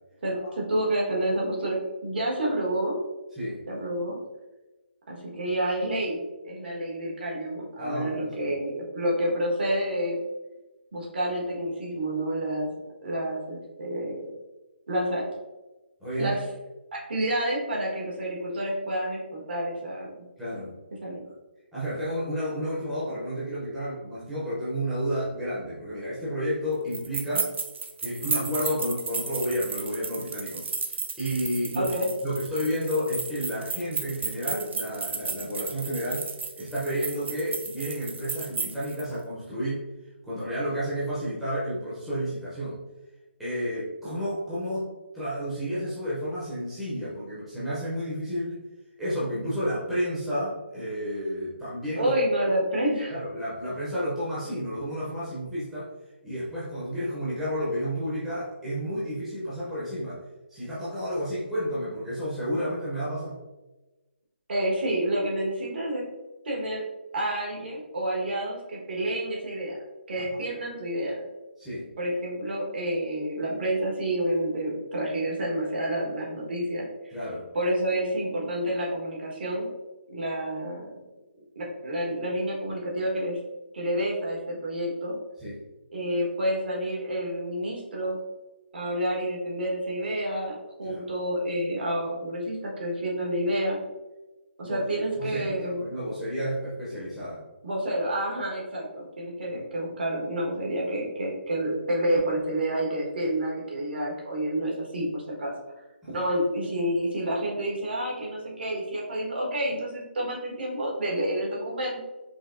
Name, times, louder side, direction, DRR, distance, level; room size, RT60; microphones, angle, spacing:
voice 1, 0.2-3.0 3.7-4.2 5.1-10.2 10.9-12.7 13.0-14.2 14.9-15.2 16.2-16.4 16.9-20.2 21.0-21.2 31.7-32.1 51.9-53.1 64.5-66.0 66.4-66.8 67.1-69.7 70.1-71.2 72.0-77.1 77.5-79.7 80.1-80.9 81.5-83.4 83.7-85.2 85.9-88.2 88.7-93.8 94.6-95.8 97.6-105.5 106.1-112.0, right 1 dB, 60° right, -3 dB, 1.3 m, -29 dB
voice 2, 7.8-8.3 16.0-16.3 20.4-20.7 21.7-27.5 28.0-30.7 31.2-31.9 32.2-36.3 36.6-39.8 40.2-42.8 43.4-44.9 45.1-48.6 49.0-52.1 53.1-55.9 56.2-60.2 60.5-63.4 70.2-70.4 71.6-71.9 77.1-77.5 85.4-85.6 90.8-91.0 94.6-94.7 95.2-97.4 106.1-106.2, equal, 5° right, -12 dB, 0.6 m, -31 dB
sound 1, 26.9-39.0, right 4 dB, 80° right, 0.6 m, -34 dB
4.8 x 2.8 x 2.5 m, 1.1 s
hypercardioid pair, 170°, 6 cm